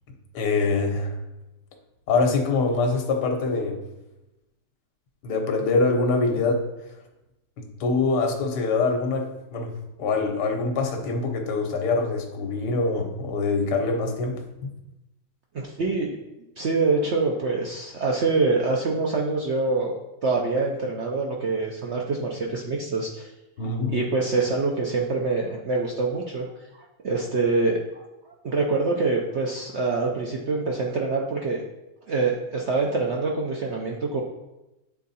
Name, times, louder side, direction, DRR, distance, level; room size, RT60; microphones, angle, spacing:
voice 1, 0.3-1.1 2.1-3.8 5.2-6.6 7.6-9.7 10.0-14.4 23.6-23.9, left 3 dB, 75° left, 4 dB, 1.5 m, -24 dB
voice 2, 15.5-16.2 16.6-23.3 23.6-26.5 27.0-28.0 28.4-31.6 32.1-34.2, right 3 dB, 65° right, -1 dB, 0.7 m, -25 dB
8.3 x 3.6 x 4.1 m, 0.97 s
omnidirectional pair, 1.9 m